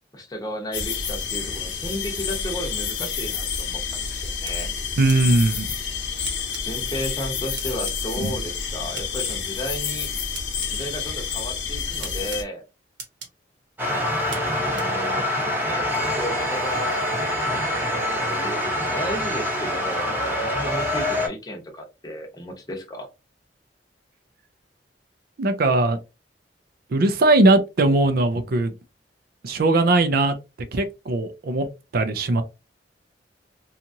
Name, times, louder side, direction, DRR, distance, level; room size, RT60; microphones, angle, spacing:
voice 1, 0.1-4.7 6.6-10.1 10.7-12.6 14.3-15.3 15.6-23.1, equal, 20° left, 0.7 m, -34 dB
sound 1, 0.7-12.4, left 6 dB, 85° left, 0.7 m, -29 dB
sound 2, 3.0-3.1 4.5-4.6 5.1-5.2 6.2-6.6 7.6-8.0 8.9-9.3 10.4-10.7 12.0-12.4 13.0-13.3 14.3-14.4 14.8-14.9, right 4 dB, 85° right, 1.1 m, -36 dB
voice 2, 5.0-5.7 8.2-8.4 25.4-26.0 26.9-28.7 29.4-30.4 30.7-31.7 31.9-32.4, right 2 dB, 55° right, 0.4 m, -19 dB
sound 3, 13.8-21.3, left 1 dB, 10° right, 0.8 m, -25 dB
2.8 x 2.4 x 2.6 m
head